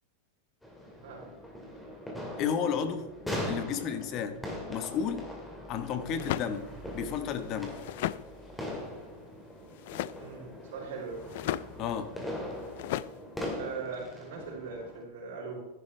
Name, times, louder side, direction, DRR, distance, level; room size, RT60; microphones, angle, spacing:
sound 1, 0.6-15.0, left 1 dB, 5° left, 2.3 m, -41 dB
voice 1, 2.4-3.1 3.5-4.4 4.7-5.3 5.7-7.8 11.8-12.1, left 7 dB, 35° left, 9 dB, 1.2 m, -32 dB
sound 2, 6.2-6.5 7.6-8.2 9.8-10.2 11.2-11.6 12.8-13.1, left 14 dB, 60° left, 0.4 m, -34 dB
voice 2, 10.1-11.2 13.5-15.6, right 5 dB, 75° right, -4 dB, 3.7 m, -40 dB
14.0 x 11.0 x 3.3 m, 1.0 s
supercardioid pair, 155°, 0 cm